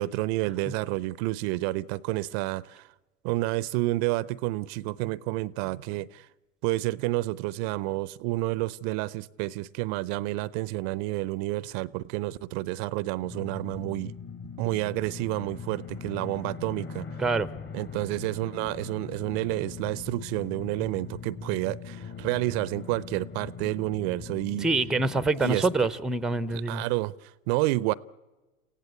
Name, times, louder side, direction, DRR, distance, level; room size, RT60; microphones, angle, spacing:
voice 1, 0.0-2.9 3.2-6.3 6.6-14.1 14.6-17.1 17.7-24.7 25.4-25.7 26.5-27.9, right 19 dB, 50° right, 0.6 m, -30 dB
sound 1, 13.2-25.2, left 5 dB, 25° left, 1.8 m, -41 dB
voice 2, 17.2-17.5 24.6-26.8, right 3 dB, ahead, 0.7 m, -25 dB
29.0 x 16.0 x 8.3 m
hypercardioid pair, 95°, 41 cm